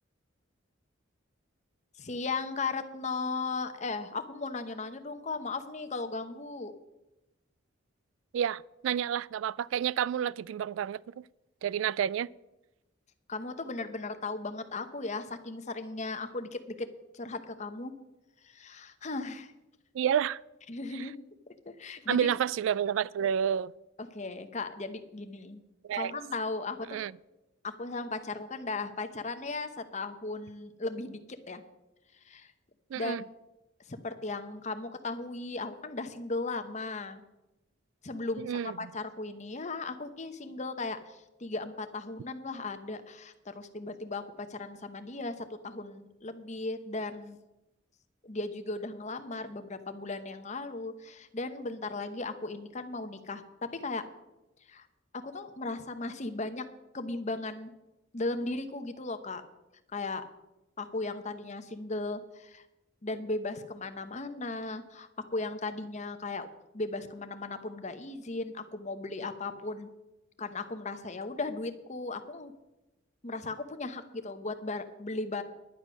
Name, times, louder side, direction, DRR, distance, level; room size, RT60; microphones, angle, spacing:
voice 1, 2.0-6.7 13.3-16.9 17.1-17.9 18.4-19.5 20.7-21.2 21.7-22.3 24.0-25.6 25.9-27.0 27.6-31.2 31.5-31.6 32.2-32.5 32.9-33.2 33.9-37.2 38.0-47.4 48.2-54.0 54.7-54.9 55.1-56.6 56.9-57.7 58.1-59.4 59.9-60.3 60.8-62.6 63.0-66.5 66.7-69.9 70.4-72.5 73.2-75.4, left 3 dB, 35° left, 1.0 m, -36 dB
voice 2, 8.3-11.2 11.6-12.3 19.9-20.4 20.9-21.1 22.1-23.7 25.8-26.1 26.9-27.1 32.9-33.2 38.4-38.9, right 9 dB, 75° right, 0.3 m, -30 dB
11.0 x 9.7 x 6.2 m
head